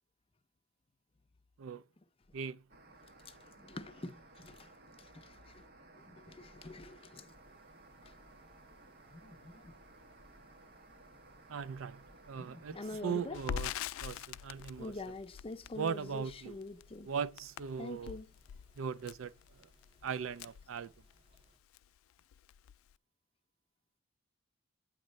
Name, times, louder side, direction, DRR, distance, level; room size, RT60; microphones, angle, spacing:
sound 1, 2.7-13.5, right 2 dB, 50° right, 1.2 m, -58 dB
voice 1, 3.2-4.7 5.0-5.6 5.9-7.3 8.0-8.1 9.1-9.7 12.4-13.4 14.8-17.1 17.8-18.3, left 2 dB, 30° left, 0.6 m, -46 dB
Mechanisms, 7.3-21.6, equal, 25° right, 1.2 m, -67 dB
voice 2, 11.5-12.8 13.0-13.7 14.0-14.9 15.8-16.5 17.1-18.1 18.8-19.3 19.6-19.7 20.0-20.9, right 6 dB, 80° right, 0.4 m, -39 dB
Crackle, 13.3-21.4 21.7-21.9 22.2-22.9, left 9 dB, 85° left, 0.3 m, -44 dB
8.8 x 3.1 x 6.4 m
head